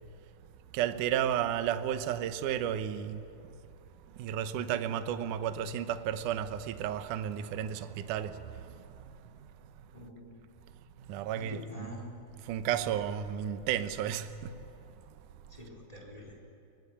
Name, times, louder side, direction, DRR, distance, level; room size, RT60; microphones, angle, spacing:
voice 1, 0.7-3.2 4.2-8.7 11.1-12.1 12.4-14.6, right 10 dB, 70° right, 2.2 m, -33 dB
voice 2, 4.5-4.8 9.9-10.4 11.3-12.2 15.5-16.4, equal, 10° left, 3.9 m, -46 dB
23.5 x 20.0 x 10.0 m
omnidirectional pair, 4.1 m